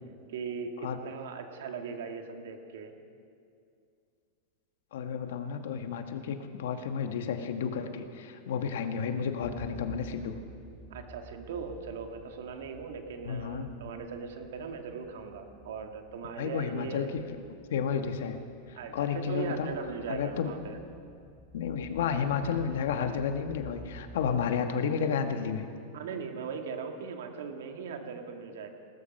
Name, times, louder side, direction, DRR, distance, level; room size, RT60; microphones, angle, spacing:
voice 1, 0.3-2.9 10.9-17.1 18.7-20.8 25.9-28.7, right 5 dB, 80° right, 4 dB, 1.8 m, -39 dB
voice 2, 4.9-10.4 13.2-13.7 16.4-17.4 17.7-18.4 18.7-19.7 20.1-20.5 21.5-25.6, left 7 dB, 80° left, 7 dB, 1.3 m, -32 dB
sound 1, 9.4-25.1, right 1 dB, 30° left, 1.2 m, -52 dB
18.5 x 13.5 x 5.3 m, 2.4 s
supercardioid pair, 135°, 0 cm